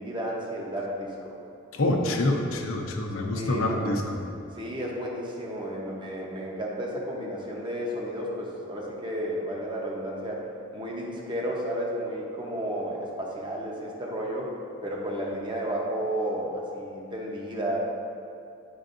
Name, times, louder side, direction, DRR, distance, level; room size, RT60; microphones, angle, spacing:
voice 1, 0.0-1.3 3.3-3.9 4.6-10.4 10.7-14.5 14.8-17.8, equal, 25° right, -3 dB, 0.9 m, -32 dB
voice 2, 1.7-4.2, left 1 dB, 80° left, 2 dB, 0.7 m, -26 dB
10.5 x 4.6 x 2.6 m, 2.5 s
head